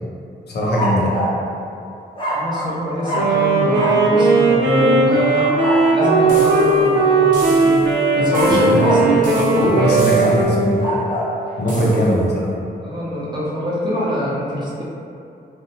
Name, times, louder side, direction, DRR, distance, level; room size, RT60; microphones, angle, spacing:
voice 1, 0.5-1.1 8.5-9.0 9.6-11.0 11.6-12.5, equal, 70° left, -5 dB, 0.6 m, -20 dB
sound 1, 0.6-1.4 2.1-2.7 3.0-3.4 3.7-4.0 5.0-6.2 8.3-9.1 10.6-11.3, right 1 dB, 30° left, 0.6 m, -24 dB
voice 2, 2.3-5.5 5.9-7.8 8.2-10.4 11.8-12.1 12.8-14.8, equal, 25° right, -7 dB, 0.6 m, -23 dB
Wind instrument woodwind instrument, 3.1-11.2, right 3 dB, 85° right, 0.4 m, -17 dB
sound 2, 6.3-6.9 7.3-8.0 8.3-8.9 9.2-10.6 11.7-12.2, right 1 dB, 50° right, 0.8 m, -36 dB
2.5 x 2.1 x 2.7 m, 2.6 s
wide cardioid pair, 115°, 18 cm